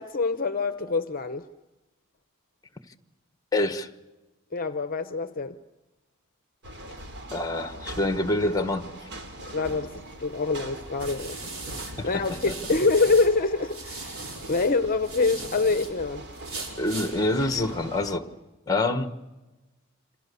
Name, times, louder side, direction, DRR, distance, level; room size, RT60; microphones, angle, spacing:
voice 1, 0.0-1.5 4.5-5.6 9.5-9.9 10.2-11.4 11.8-16.2, left 3 dB, 40° left, 0.8 m, -25 dB
voice 2, 3.5-3.9 7.3-9.1 12.0-12.5 16.8-18.3 18.7-19.2, left 2 dB, 15° left, 1.3 m, -26 dB
sound 1, 6.6-18.2, right 1 dB, 55° right, 2.9 m, -42 dB
sound 2, 10.1-13.3 13.6-15.9 16.3-17.1, right 3 dB, 75° right, 5.3 m, -39 dB
27.5 x 27.0 x 6.9 m
head